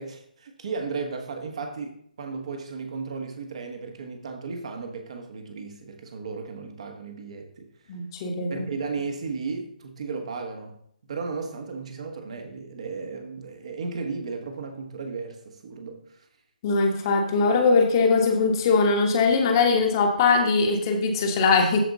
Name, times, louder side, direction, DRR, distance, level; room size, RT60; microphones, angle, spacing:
voice 1, 0.0-7.7 8.5-10.8 11.0-16.2, right 4 dB, 45° right, 5 dB, 1.4 m, -35 dB
voice 2, 7.9-8.7 16.6-21.8, left 4 dB, 25° left, 3 dB, 1.4 m, -21 dB
14.0 x 5.0 x 4.0 m, 0.69 s
figure-of-eight pair, 140°, 5 cm